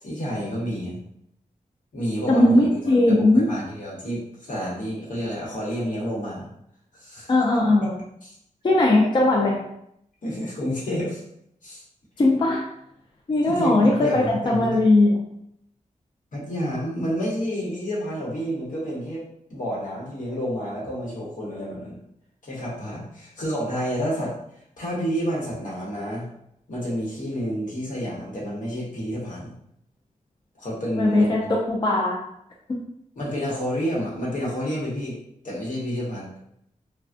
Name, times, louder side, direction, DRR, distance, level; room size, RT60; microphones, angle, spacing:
voice 1, 0.0-1.0 1.9-6.5 6.9-7.3 8.2-8.3 10.2-11.2 11.6-11.8 13.4-14.8 16.3-19.2 19.5-22.0 22.4-24.4 24.8-26.3 26.7-29.5 30.6-31.5 33.2-35.2 35.4-36.3, equal, 70° left, -5 dB, 1.0 m, -29 dB
voice 2, 2.3-3.5 7.3-7.9 8.6-9.6 12.2-12.6 13.3-15.2 30.9-31.4 31.7-32.2, left 2 dB, 35° left, -2 dB, 0.4 m, -19 dB
3.3 x 2.2 x 2.5 m, 0.75 s
wide cardioid pair, 165°, 14 cm